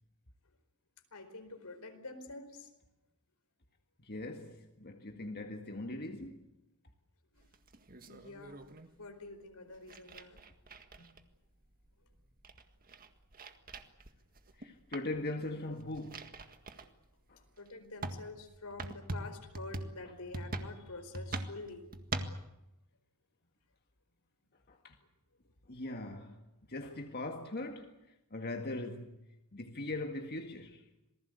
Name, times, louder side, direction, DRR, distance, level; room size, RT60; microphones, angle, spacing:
voice 1, 1.1-2.7 7.3-7.4 8.1-8.6 9.0-10.4 11.0-11.1 17.6-21.9, left 2 dB, 80° left, 4.6 m, -47 dB
voice 2, 4.0-6.4 14.6-16.3 17.3-17.4 24.7-25.0 25.7-26.4 26.7-27.9 28.3-29.2 29.5-30.9, left 2 dB, 45° left, 1.9 m, -40 dB
sound 1, 7.4-8.9 9.7-11.4 11.8-11.9 12.2-14.7 14.9-15.2 15.7-16.9 17.5-17.6 18.0-22.4, right 2 dB, 40° right, 1.8 m, -42 dB
27.0 x 19.5 x 8.3 m
head